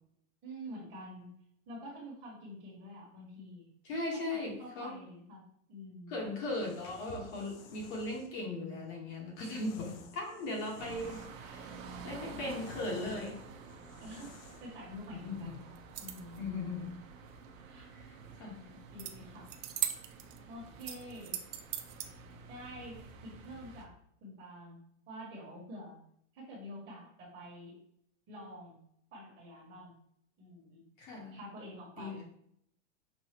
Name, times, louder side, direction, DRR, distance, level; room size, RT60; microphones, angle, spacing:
voice 1, 0.4-1.3 1.7-3.7 4.1-5.4 5.7-6.2 14.0-14.3 14.6-16.5 17.6-17.9 18.9-19.5 20.5-21.4 22.5-24.8 25.1-26.0 26.3-27.8 28.3-28.8 29.1-29.9 30.4-30.8 31.3-32.2, equal, 25° right, -4 dB, 1.5 m, -48 dB
voice 2, 3.8-5.0 6.1-11.7 12.0-13.4 15.2-15.6 16.4-16.9 17.9-18.6 31.0-31.4 32.0-32.2, left 2 dB, 40° left, -1 dB, 1.3 m, -38 dB
sound 1, 6.4-8.3 9.4-11.5 11.9-14.8, left 4 dB, 85° left, 0.8 m, -53 dB
sound 2, 10.8-23.9, right 4 dB, 85° right, 0.9 m, -50 dB
sound 3, 15.7-16.4 19.0-19.1 19.4-20.4 20.8-22.1, right 11 dB, 65° right, 0.6 m, -38 dB
5.5 x 2.6 x 2.9 m, 0.69 s
supercardioid pair, 160°, 39 cm